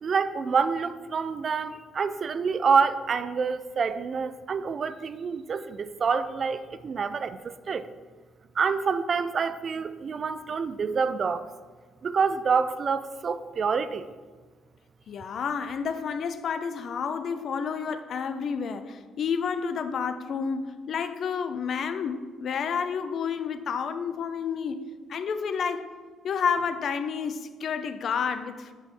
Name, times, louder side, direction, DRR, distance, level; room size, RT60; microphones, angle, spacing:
voice 1, 0.0-7.9 8.6-11.5 12.0-14.1, right 5 dB, 40° right, 12 dB, 0.3 m, -27 dB
voice 2, 15.1-24.8 25.1-25.9 26.2-28.7, left 6 dB, 50° left, 10 dB, 0.5 m, -30 dB
8.3 x 7.1 x 3.4 m, 1.4 s
cardioid pair, 125°, 0 cm